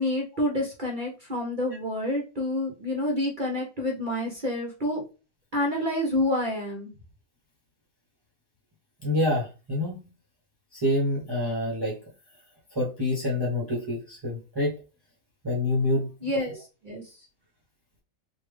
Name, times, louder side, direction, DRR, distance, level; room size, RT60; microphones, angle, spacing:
voice 1, 0.0-5.0 5.5-6.9 16.2-17.2, left 1 dB, 40° right, -1 dB, 0.8 m, -28 dB
voice 2, 9.0-10.1 10.7-12.0 12.7-14.7 15.4-16.1, left 1 dB, 20° right, -4 dB, 0.9 m, -27 dB
3.4 x 2.6 x 3.1 m, 0.32 s
omnidirectional pair, 1.5 m